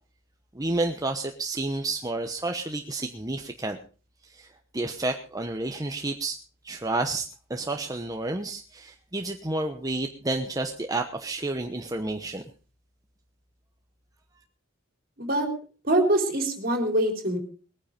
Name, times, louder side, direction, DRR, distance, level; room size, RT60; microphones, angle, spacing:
voice 1, 0.5-3.8 4.3-4.5 4.7-6.4 6.6-7.2 7.5-12.4, right 2 dB, 20° right, 4 dB, 1.0 m, -30 dB
voice 2, 15.2-15.5 15.8-17.4, right 1 dB, 45° right, 5 dB, 3.7 m, -24 dB
20.5 x 9.6 x 5.2 m, 0.39 s
head